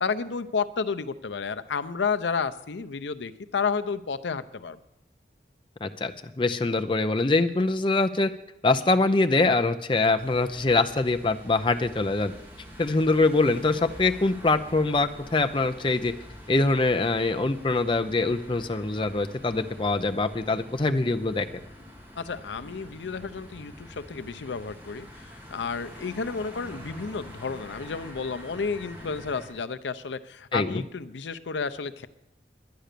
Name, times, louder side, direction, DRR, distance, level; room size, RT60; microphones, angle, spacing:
voice 1, 0.0-4.8 22.2-32.1, left 5 dB, 85° left, 11 dB, 0.6 m, -31 dB
voice 2, 5.8-8.3 8.6-12.3 12.8-16.1 16.5-21.6 30.5-30.8, left 3 dB, 30° left, 7 dB, 0.5 m, -24 dB
sound 1, 10.1-29.5, equal, 15° right, 2.9 m, -46 dB
10.5 x 10.0 x 6.7 m, 0.88 s
head